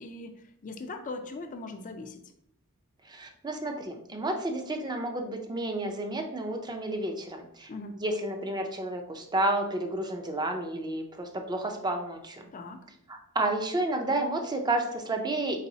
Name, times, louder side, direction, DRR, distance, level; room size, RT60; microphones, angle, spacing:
voice 1, 0.0-2.2 7.7-8.0 12.5-12.9, left 2 dB, 35° left, 6 dB, 0.4 m, -40 dB
voice 2, 3.1-7.7 8.0-12.5 13.1-15.7, right 2 dB, 20° right, 4 dB, 0.5 m, -31 dB
4.0 x 3.9 x 2.7 m, 0.74 s
head